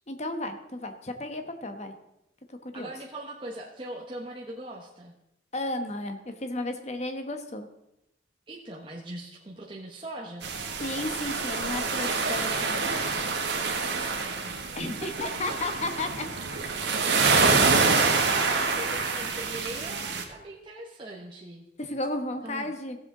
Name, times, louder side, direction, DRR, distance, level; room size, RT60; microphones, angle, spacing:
voice 1, 0.1-1.9 2.5-2.9 5.5-7.7 10.8-12.9 14.7-16.3 21.8-23.0, left 1 dB, 40° left, 7 dB, 1.1 m, -33 dB
voice 2, 2.7-5.1 8.5-10.5 13.7-14.6 15.0-15.6 17.3-21.6 22.4-22.7, right 1 dB, 25° right, -3 dB, 1.1 m, -40 dB
sound 1, 10.4-20.2, right 4 dB, 75° right, 1.5 m, -26 dB
15.5 x 7.7 x 3.8 m, 0.86 s
head